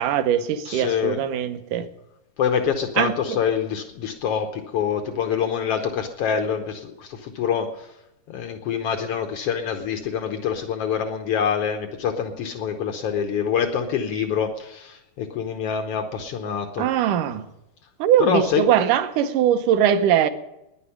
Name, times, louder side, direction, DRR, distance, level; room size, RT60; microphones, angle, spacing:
voice 1, 0.0-1.9 3.0-3.1 16.8-17.5 18.0-20.3, right 10 dB, 70° right, 2.2 m, -21 dB
voice 2, 0.6-1.2 2.4-7.7 8.3-16.9 18.2-18.6, left 7 dB, 90° left, 1.3 m, -25 dB
10.5 x 10.0 x 9.9 m
omnidirectional pair, 4.0 m